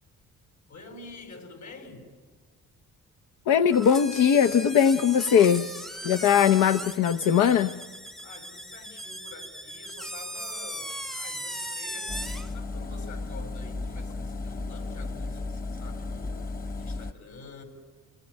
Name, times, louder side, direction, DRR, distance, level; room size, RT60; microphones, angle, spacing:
voice 1, 0.7-2.1 8.2-16.4 16.7-17.6, left 3 dB, 70° left, 5 dB, 6.9 m, -47 dB
voice 2, 3.5-5.6 6.0-7.7, left 8 dB, 90° left, 9 dB, 0.9 m, -20 dB
sound 1, 3.7-12.5, equal, ahead, 0.7 m, -38 dB
Engine, 12.1-17.1, left 3 dB, 30° left, 1.3 m, -34 dB
30.0 x 20.0 x 10.0 m, 1.4 s
cardioid pair, 90°, 30 cm